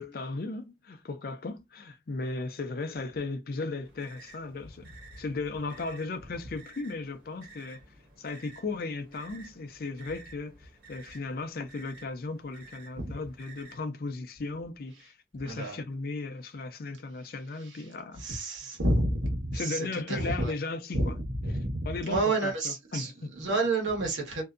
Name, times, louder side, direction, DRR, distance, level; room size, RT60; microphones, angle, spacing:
voice 1, 0.0-4.9 5.2-7.8 8.2-18.4 19.5-21.2 21.8-23.5, left 3 dB, 55° left, 0.4 m, -36 dB
sound 1, 3.8-13.8, right 3 dB, 55° right, 1.2 m, -54 dB
voice 2, 15.4-15.8 17.6-17.8 18.2-20.5 20.9-24.4, right 2 dB, 90° right, 1.1 m, -30 dB
2.6 x 2.2 x 2.4 m
head